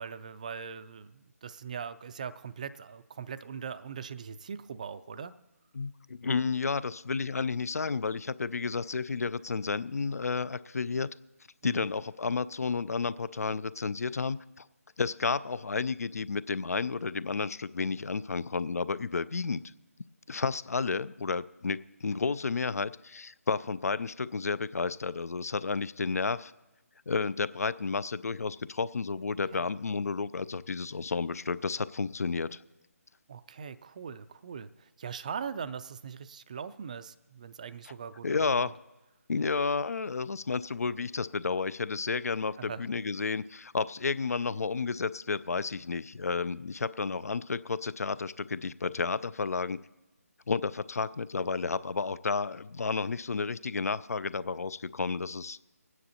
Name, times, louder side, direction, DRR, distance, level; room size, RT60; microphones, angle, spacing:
voice 1, 0.0-5.3 11.6-11.9 29.5-29.7 33.3-38.7 42.6-42.8, right 6 dB, 30° right, 14 dB, 0.3 m, -41 dB
voice 2, 5.7-11.1 11.6-14.7 15.0-19.6 20.3-26.5 27.1-32.6 37.8-37.9 38.2-38.7 39.3-49.8 50.5-55.6, left 4 dB, 70° left, 18 dB, 0.4 m, -31 dB
26.5 x 9.5 x 2.8 m, 1.0 s
figure-of-eight pair, 155°, 8 cm